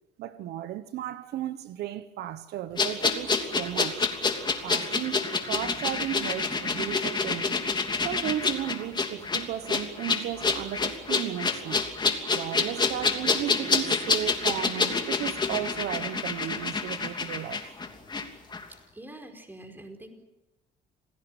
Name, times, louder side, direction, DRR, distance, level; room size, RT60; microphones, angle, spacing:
voice 1, 0.2-4.2 4.6-7.6 8.0-11.9 12.3-17.7, right 12 dB, 75° right, 1.2 m, -35 dB
sound 1, 2.8-18.3 18.5-18.6, left 4 dB, 25° left, 3.0 m, -28 dB
voice 2, 18.9-20.2, right 1 dB, 10° right, 5.0 m, -45 dB
27.5 x 17.5 x 9.2 m
cardioid pair, 110°, 17 cm